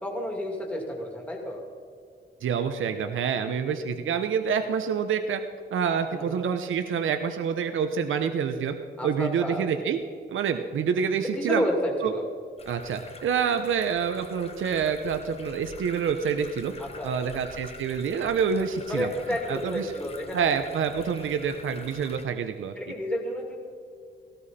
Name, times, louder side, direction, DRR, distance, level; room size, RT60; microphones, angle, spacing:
voice 1, 0.0-1.6 6.1-6.5 9.0-9.7 11.2-12.2 16.8-17.4 18.9-20.5 21.4-21.7 22.8-23.6, equal, 5° left, 0 dB, 2.5 m, -31 dB
voice 2, 2.4-5.4 5.7-8.7 9.0-10.0 10.3-11.7 12.0-12.1 12.7-16.7 17.0-19.1 19.5-19.9 20.3-22.7, right 7 dB, 85° right, 7 dB, 0.8 m, -27 dB
sound 1, 12.6-22.3, left 3 dB, 30° left, 1.1 m, -46 dB
18.0 x 16.5 x 4.3 m, 2.2 s
wide cardioid pair, 175°, 20 cm